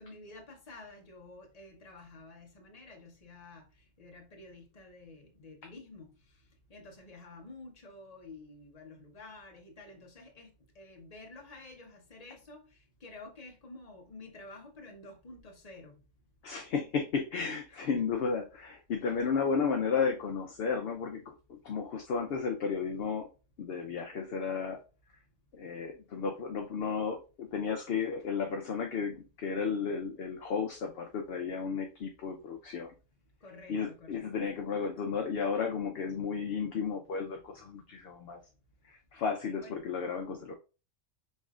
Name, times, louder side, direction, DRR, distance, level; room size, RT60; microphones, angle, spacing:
voice 1, 0.0-3.7 4.0-6.1 6.7-15.9 17.7-17.8 33.4-34.5 39.6-39.8, left 2 dB, 30° left, 1.0 m, -50 dB
voice 2, 16.4-23.3 23.6-24.8 25.5-32.9 33.7-38.4 38.8-40.5, left 5 dB, 60° left, 0.7 m, -33 dB
5.4 x 3.1 x 2.4 m
omnidirectional pair, 1.4 m